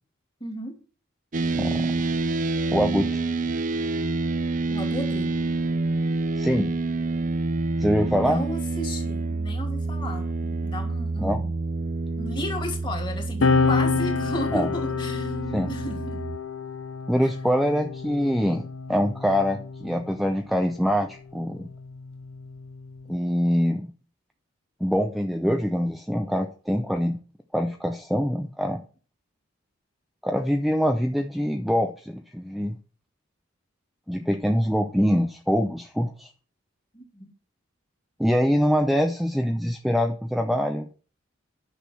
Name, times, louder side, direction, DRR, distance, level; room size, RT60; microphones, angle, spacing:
voice 1, 0.4-0.8 4.7-5.3 8.1-11.5 12.2-15.4 15.7-16.2 17.2-17.3 36.9-37.3, left 1 dB, 25° left, 3 dB, 2.8 m, -34 dB
sound 1, 1.3-16.4, right 3 dB, 40° right, 0.5 m, -28 dB
voice 2, 1.5-2.0 2.7-3.2 6.4-6.7 7.8-8.4 11.2-11.4 14.5-14.7 15.5-15.7 17.1-18.6 18.9-21.7 23.1-23.9 24.8-27.2 27.5-28.8 30.2-32.8 34.1-36.3 38.2-40.9, equal, ahead, 5 dB, 0.6 m, -24 dB
sound 2, 13.4-20.3 21.3-23.1, left 4 dB, 80° left, 0.8 m, -28 dB
10.5 x 6.6 x 6.0 m, 0.38 s
head